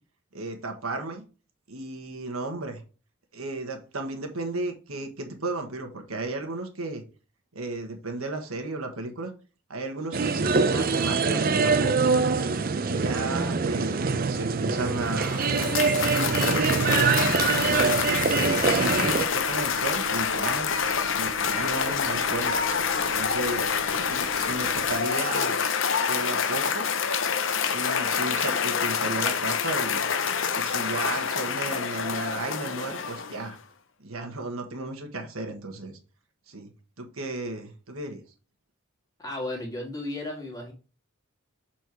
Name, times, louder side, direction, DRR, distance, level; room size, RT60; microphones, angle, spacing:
voice 1, 0.3-1.2 1.7-2.8 3.3-7.0 7.5-9.3 9.7-12.1 12.7-15.5 16.0-17.2 17.6-20.7 21.1-22.6 23.0-23.7 24.0-25.6 26.1-26.9 27.6-30.0 30.5-33.6 34.0-36.0 36.5-36.7 37.0-38.2, right 2 dB, 90° right, 4 dB, 1.5 m, -34 dB
sound 1, 10.1-19.2, right 4 dB, 45° right, 0.5 m, -24 dB
Cheering / Applause, 14.9-33.5, left 6 dB, 65° left, 0.6 m, -27 dB
sound 2, 16.3-24.9, right 4 dB, 65° right, 1.6 m, -43 dB
voice 2, 39.2-40.7, left 1 dB, 15° left, -1 dB, 2.0 m, -34 dB
6.3 x 4.5 x 4.5 m, 0.34 s
head